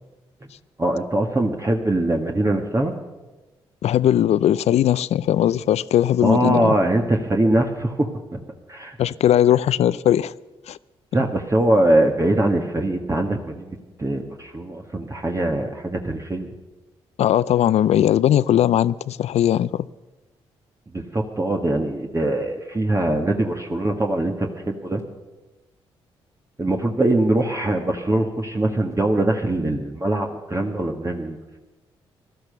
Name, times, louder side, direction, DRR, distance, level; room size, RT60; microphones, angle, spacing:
voice 1, 0.8-2.9 6.2-8.4 8.7-9.0 11.1-16.5 20.9-25.0 26.6-31.4, right 1 dB, 25° right, 1.7 m, -22 dB
voice 2, 3.8-6.7 9.0-10.3 10.7-10.8 17.2-19.8, left 11 dB, 70° left, 0.5 m, -19 dB
16.5 x 12.5 x 6.8 m
supercardioid pair, 50°, 12 cm